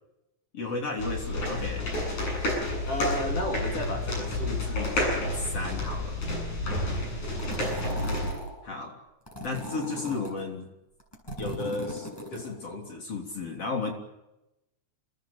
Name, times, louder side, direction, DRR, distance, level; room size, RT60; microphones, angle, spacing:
voice 1, 0.5-1.8 2.9-6.2 8.6-9.0 9.4-10.7 11.4-13.9, left 2 dB, 50° left, 1 dB, 4.3 m, -33 dB
sound 1, 1.0-8.3, left 1 dB, 70° left, 9.5 m, -30 dB
sound 2, 7.4-8.5 9.3-10.4 11.0-12.5, left 1 dB, 5° left, 7.7 m, -38 dB
27.5 x 20.0 x 8.9 m, 0.93 s
omnidirectional pair, 3.4 m